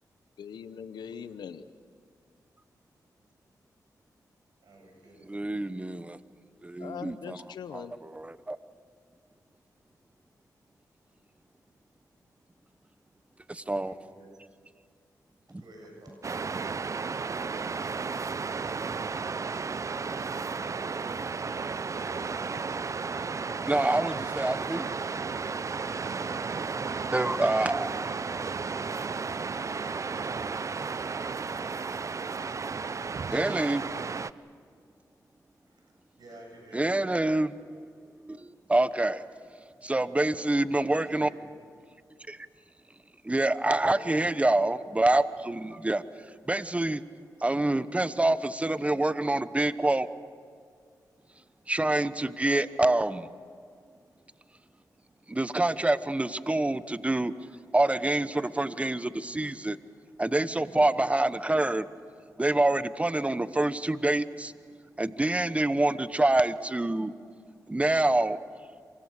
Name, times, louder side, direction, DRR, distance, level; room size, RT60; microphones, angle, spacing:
voice 1, 0.4-1.6 6.8-7.9, left 7 dB, 80° left, 12 dB, 0.9 m, -41 dB
voice 2, 4.6-5.7 13.6-14.3 15.6-16.2 35.7-36.9 40.1-40.5 40.8-41.4 42.1-42.3 43.9-44.3, right 1 dB, 65° right, 1 dB, 7.5 m, -52 dB
voice 3, 5.3-6.2 6.6-7.4 7.7-8.6 13.5-14.0 15.5-15.6 16.1-16.2 23.6-24.9 27.1-28.1 33.3-33.8 36.7-37.5 38.2-39.2 39.8-41.3 42.3-42.4 43.2-46.0 46.5-47.0 47.4-50.1 51.7-53.3 55.3-57.3 57.7-59.8 60.2-61.8 62.4-64.5 65.0-67.1 67.7-68.4, right 2 dB, 15° right, 14 dB, 1.0 m, -26 dB
Waves surf, 16.2-34.3, right 4 dB, 45° right, 0.7 m, -33 dB
27.5 x 23.5 x 6.7 m, 2.1 s
cardioid pair, 50°, 7 cm